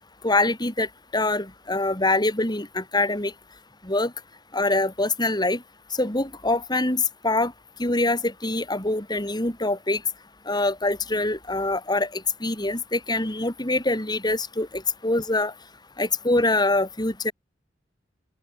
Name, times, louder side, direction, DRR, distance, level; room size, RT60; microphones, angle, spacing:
voice 1, 0.2-0.9 1.1-3.3 3.9-4.1 4.5-5.6 6.0-7.5 7.8-10.0 10.5-15.5 16.0-17.3, left 2 dB, 25° left, 5.5 m, -24 dB
open air
head